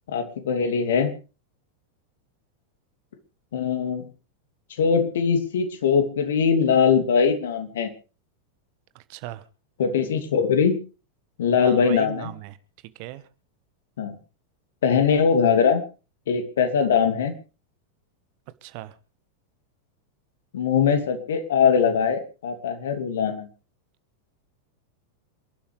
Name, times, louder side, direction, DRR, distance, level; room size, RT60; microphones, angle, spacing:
voice 1, 0.1-1.1 3.5-4.1 4.8-7.9 9.8-10.8 11.4-12.3 14.0-14.2 14.8-15.8 16.3-17.3 20.5-23.5, left 6 dB, 60° left, 7 dB, 2.7 m, -21 dB
voice 2, 8.9-9.4 11.6-12.6 12.9-13.2 18.6-19.0, right 16 dB, 45° right, 14 dB, 1.3 m, -38 dB
28.0 x 12.0 x 3.4 m, 0.34 s
figure-of-eight pair, 90°, 0 cm